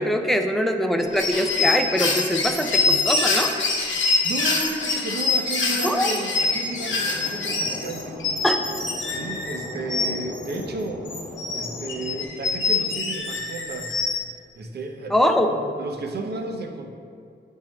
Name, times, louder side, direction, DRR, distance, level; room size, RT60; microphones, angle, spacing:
voice 1, 0.0-3.6 5.8-6.1 8.4-8.6 15.1-15.7, equal, ahead, 4 dB, 0.3 m, -22 dB
sound 1, 1.0-10.6 11.1-14.2, left 3 dB, 80° left, 0.9 m, -25 dB
voice 2, 4.2-8.2 9.1-11.1 11.5-14.0 14.5-16.9, right 2 dB, 60° right, 3 dB, 0.6 m, -33 dB
sound 2, 6.6-12.2, left 1 dB, 25° left, 0.7 m, -38 dB
8.8 x 3.6 x 3.1 m, 2.3 s
wide cardioid pair, 160°, 20 cm